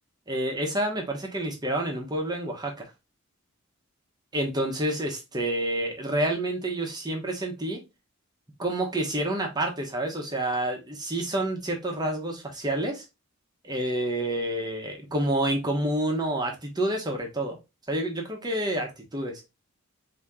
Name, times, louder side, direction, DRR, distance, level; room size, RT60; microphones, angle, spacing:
voice 1, 0.3-2.7 4.3-7.8 8.6-13.0 13.6-17.6 17.9-19.4, right 1 dB, 20° right, 2 dB, 1.0 m, -28 dB
4.2 x 2.9 x 3.6 m, 0.25 s
head